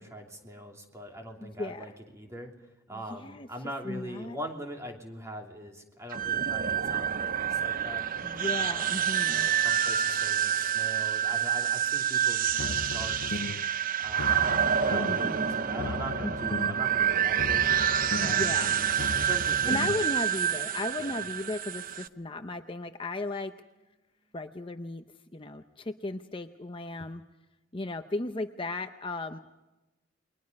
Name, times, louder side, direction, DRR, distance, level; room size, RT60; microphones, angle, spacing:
voice 1, 0.0-2.5 2.9-8.0 8.6-13.4 14.0-17.8 18.1-18.5 19.1-20.1 21.0-21.2, equal, 15° right, 2 dB, 2.9 m, -42 dB
voice 2, 1.4-2.0 2.9-3.5 3.8-4.4 8.2-9.5 14.4-15.5 16.2-16.3 18.2-18.7 19.7-23.5 24.3-25.0 25.3-27.2 27.7-29.4, left 2 dB, 25° left, 7 dB, 0.7 m, -36 dB
sound 1, 6.1-22.1, right 9 dB, 45° right, 0.7 m, -28 dB
sound 2, 12.4-13.7 14.0-15.3 15.6-16.9 17.2-20.1, left 3 dB, 60° left, 0.7 m, -37 dB
sound 3, 14.5-21.3 21.6-21.8 22.1-22.2, right 2 dB, 75° right, 3.2 m, -48 dB
29.5 x 22.0 x 5.4 m, 1.0 s
head